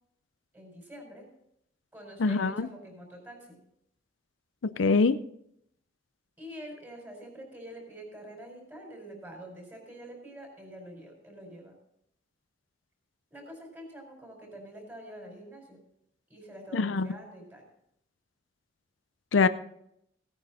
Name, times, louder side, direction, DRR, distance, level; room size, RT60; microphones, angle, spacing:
voice 1, 0.5-1.3 1.9-3.6 6.4-11.7 13.3-15.8 16.3-17.6, right 1 dB, 10° right, 0 dB, 4.7 m, -46 dB
voice 2, 2.2-2.7 4.6-5.2 16.7-17.1 19.3-19.5, left 4 dB, 90° left, 13 dB, 0.6 m, -24 dB
17.0 x 9.6 x 4.2 m, 0.74 s
head